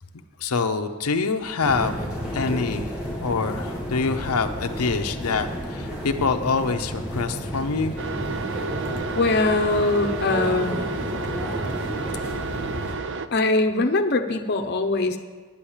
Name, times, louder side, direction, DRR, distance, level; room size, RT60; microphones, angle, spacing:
voice 1, 0.4-2.0 2.3-2.9 3.2-8.0, left 4 dB, 90° left, 6 dB, 0.7 m, -25 dB
sound 1, 1.6-12.9, equal, 5° right, 2.3 m, -32 dB
sound 2, 8.0-13.3, right 4 dB, 55° right, 0.5 m, -31 dB
voice 2, 9.1-10.8 13.3-15.2, left 2 dB, 45° left, 5 dB, 0.8 m, -22 dB
9.8 x 8.5 x 7.2 m, 1.4 s
head